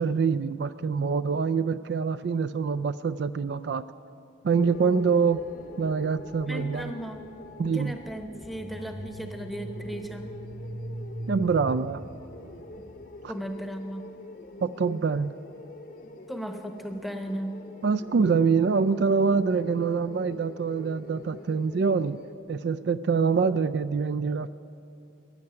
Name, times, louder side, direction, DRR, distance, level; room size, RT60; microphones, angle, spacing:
voice 1, 0.0-3.8 4.4-5.4 5.8-6.9 7.6-7.9 11.3-12.0 13.2-13.3 14.6-15.3 17.8-22.2 22.5-24.5, right 5 dB, 55° right, 14 dB, 0.3 m, -25 dB
sound 1, 4.6-22.4, left 2 dB, 45° left, 0.9 m, -45 dB
voice 2, 6.5-7.3 7.6-10.3 13.3-14.1 16.3-17.6, right 1 dB, ahead, 5 dB, 0.8 m, -36 dB
sound 2, 8.5-13.2, equal, 40° right, 1.2 m, -40 dB
13.5 x 10.5 x 9.6 m, 2.6 s
head